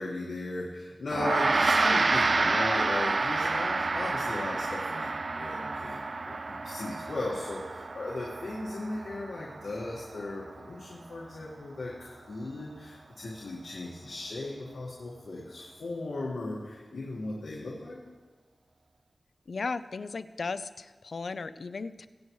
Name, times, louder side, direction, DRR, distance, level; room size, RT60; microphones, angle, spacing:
voice 1, 0.0-18.0, left 2 dB, 90° left, -5 dB, 1.7 m, -37 dB
Gong, 1.1-10.8, right 3 dB, 50° right, 0.3 m, -29 dB
voice 2, 19.5-22.1, left 4 dB, 70° left, 13 dB, 0.5 m, -36 dB
21.5 x 8.3 x 3.2 m, 1.3 s
wide cardioid pair, 95°, 0 cm